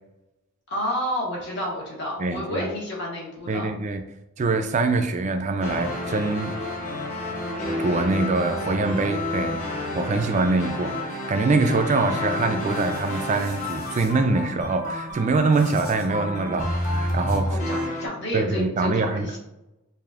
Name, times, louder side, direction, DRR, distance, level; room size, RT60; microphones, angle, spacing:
voice 1, 0.7-3.7 17.4-19.4, left 1 dB, 50° left, -4 dB, 1.2 m, -30 dB
voice 2, 2.2-2.7 3.5-4.0 4.4-6.6 7.8-17.6 18.3-19.4, right 3 dB, 35° right, 7 dB, 0.3 m, -24 dB
sound 1, 5.6-18.1, left 1 dB, 35° left, 0.8 m, -30 dB
sound 2, 12.5-14.1 15.5-16.1 17.3-17.4, left 2 dB, 75° left, 1.3 m, -46 dB
4.9 x 2.5 x 2.4 m, 0.92 s
head